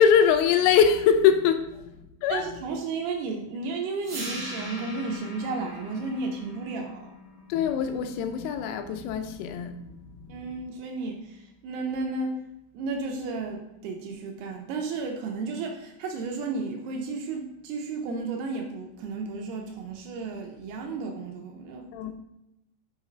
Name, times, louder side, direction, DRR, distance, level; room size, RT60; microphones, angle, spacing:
voice 1, 0.0-2.6 7.5-10.6 21.9-22.1, left 7 dB, 85° left, 2.9 m, -23 dB
voice 2, 2.3-7.1 10.3-12.4 12.7-21.9, right 3 dB, 80° right, 2.5 m, -33 dB
sound 1, 4.0-10.0, equal, 45° right, 2.4 m, -41 dB
5.8 x 5.2 x 4.9 m
omnidirectional pair, 5.1 m